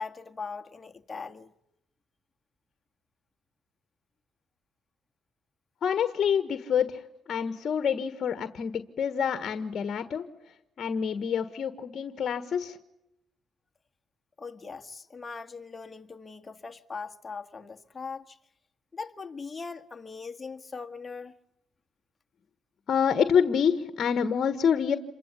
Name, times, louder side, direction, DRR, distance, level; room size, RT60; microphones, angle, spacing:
voice 1, 0.0-1.5 14.4-18.4 18.9-21.3, left 4 dB, 25° left, 2.0 m, -40 dB
voice 2, 5.8-7.0 7.3-10.2 10.8-12.8 22.9-25.0, left 7 dB, 55° left, 1.5 m, -27 dB
28.0 x 24.0 x 8.4 m
cardioid pair, 90°, 0 cm